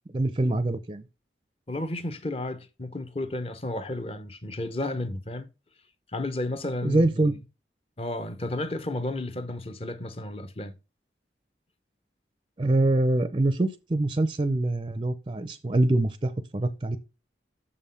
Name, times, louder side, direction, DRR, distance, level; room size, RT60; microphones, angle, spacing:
voice 1, 0.1-1.0 6.8-7.3 12.6-17.0, right 2 dB, 30° right, 0.5 m, -24 dB
voice 2, 1.7-5.5 6.1-7.3 8.0-10.7, left 2 dB, 35° left, 0.8 m, -32 dB
6.7 x 5.5 x 5.6 m
head